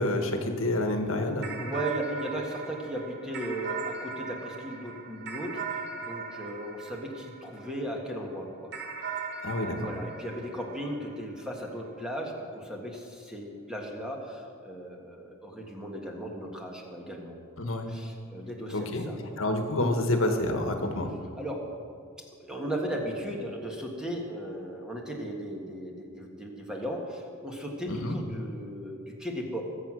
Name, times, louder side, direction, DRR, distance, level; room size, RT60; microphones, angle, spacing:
voice 1, 0.0-1.5 9.4-9.9 17.6-17.9 18.7-19.0 19.4-21.1 27.9-28.2, left 1 dB, 65° left, 5 dB, 1.5 m, -28 dB
sound 1, 1.4-8.0 8.7-11.5, right 5 dB, 55° right, 1.7 m, -39 dB
voice 2, 1.6-8.7 9.0-9.3 9.8-17.4 17.9-19.4 21.4-21.7 22.4-29.6, equal, 5° right, -1 dB, 1.7 m, -36 dB
22.0 x 7.8 x 6.3 m, 2.3 s
head